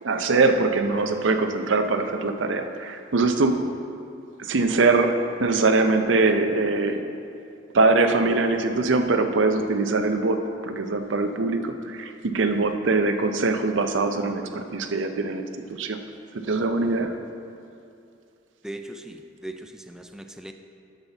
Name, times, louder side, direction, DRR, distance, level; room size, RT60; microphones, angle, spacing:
voice 1, 0.0-3.6 4.4-7.0 7.7-16.0 16.5-17.1, right 3 dB, 80° right, 7 dB, 0.6 m, -22 dB
voice 2, 18.6-20.5, right 1 dB, 5° right, 6 dB, 0.3 m, -39 dB
12.5 x 5.7 x 4.0 m, 2.5 s
head